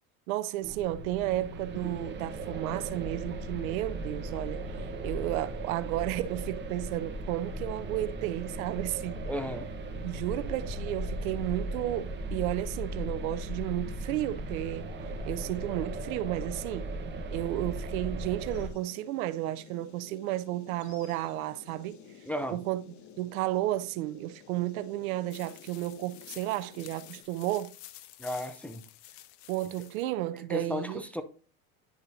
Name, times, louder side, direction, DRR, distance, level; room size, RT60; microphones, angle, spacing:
voice 1, 0.3-9.2 10.0-14.9 15.3-16.9 17.3-22.0 22.5-22.8 23.2-27.7 29.5-31.0, right 15 dB, 90° right, 0.6 m, -33 dB
sound 1, 0.6-18.7, right 1 dB, 25° right, 1.2 m, -37 dB
voice 2, 9.3-9.7 22.3-22.6 28.2-28.8 30.3-31.2, equal, 5° left, 0.4 m, -34 dB
sound 2, 18.5-27.2, left 7 dB, 45° left, 1.0 m, -53 dB
sound 3, 25.3-30.0, left 14 dB, 70° left, 0.7 m, -50 dB
10.5 x 4.0 x 2.7 m
supercardioid pair, 115°, 41 cm